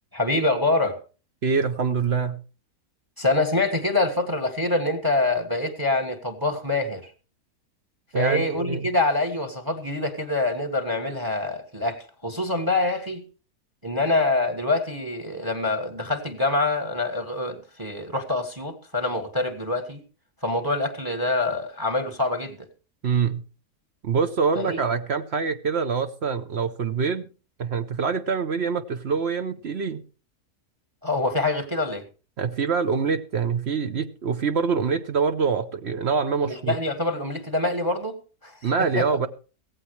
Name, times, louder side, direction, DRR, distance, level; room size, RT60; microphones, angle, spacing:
voice 1, 0.1-1.0 3.2-7.1 8.1-13.2 13.8-20.0 20.4-22.6 24.5-24.8 31.0-32.0 36.4-38.7 38.9-39.3, left 2 dB, 15° right, 8 dB, 1.5 m, -25 dB
voice 2, 1.4-2.4 8.1-8.8 23.0-23.4 24.0-27.3 27.6-30.0 32.4-36.8 38.6-39.3, right 5 dB, 50° right, 10 dB, 0.9 m, -25 dB
16.0 x 15.5 x 3.2 m, 0.35 s
omnidirectional pair, 1.7 m